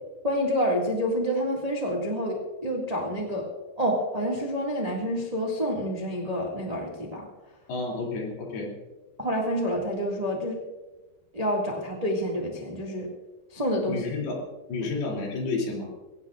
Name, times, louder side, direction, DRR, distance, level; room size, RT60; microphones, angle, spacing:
voice 1, 0.2-3.5 3.8-7.3 9.2-10.6 11.3-13.1 13.5-14.0 14.8-14.9, equal, 35° right, -1 dB, 0.6 m, -28 dB
voice 2, 7.7-8.7 13.9-15.9, left 3 dB, 70° left, -1 dB, 4.8 m, -31 dB
22.5 x 17.5 x 2.5 m, 1.2 s
omnidirectional pair, 4.8 m